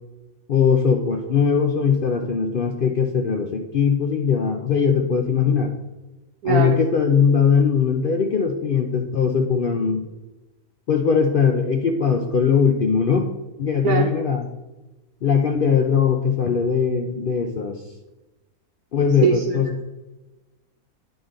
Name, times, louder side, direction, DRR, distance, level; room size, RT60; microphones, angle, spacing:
voice 1, 0.5-5.7 6.4-10.1 10.9-13.3 13.6-14.5 15.2-17.8 18.9-19.7, left 6 dB, 60° left, 3 dB, 0.5 m, -20 dB
voice 2, 6.4-6.8 13.8-14.1 19.2-19.6, right 6 dB, 90° right, 0 dB, 1.3 m, -21 dB
11.0 x 4.0 x 3.8 m, 1.1 s
omnidirectional pair, 1.5 m